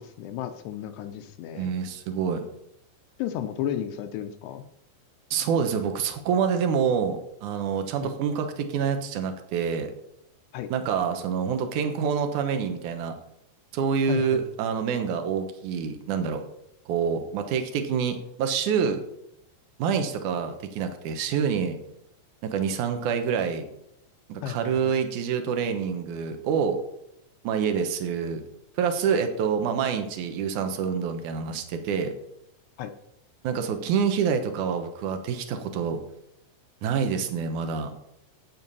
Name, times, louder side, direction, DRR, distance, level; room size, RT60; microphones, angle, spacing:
voice 1, 0.0-1.7 3.2-4.6 8.0-8.1 10.5-10.7 14.1-14.4 24.4-25.0 32.8-32.9, left 10 dB, 80° left, 8 dB, 2.8 m, -33 dB
voice 2, 1.6-2.4 5.3-9.9 10.7-13.2 13.7-16.4 16.9-19.0 19.8-21.8 22.4-23.6 24.3-26.8 27.4-28.4 28.8-32.1 33.4-36.0 36.8-38.0, right 6 dB, 70° right, 6 dB, 1.9 m, -27 dB
12.0 x 8.8 x 5.5 m, 0.77 s
omnidirectional pair, 5.1 m